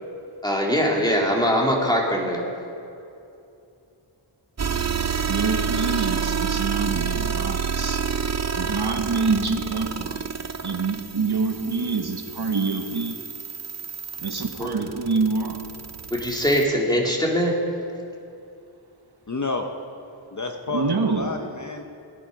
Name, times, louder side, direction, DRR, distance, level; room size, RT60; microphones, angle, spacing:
voice 1, 0.4-2.4 14.6-14.7 16.1-17.5, equal, 10° left, -2 dB, 2.6 m, -22 dB
sound 1, 4.6-16.6, right 6 dB, 35° right, 0.6 m, -29 dB
voice 2, 5.3-8.0 8.6-10.3 10.6-13.1 14.2-15.6 20.7-21.3, right 4 dB, 50° right, 4 dB, 1.4 m, -26 dB
voice 3, 19.3-19.7 20.3-21.8, left 3 dB, 35° left, 4 dB, 0.9 m, -30 dB
17.5 x 9.9 x 5.2 m, 2.6 s
cardioid pair, 50°, 50 cm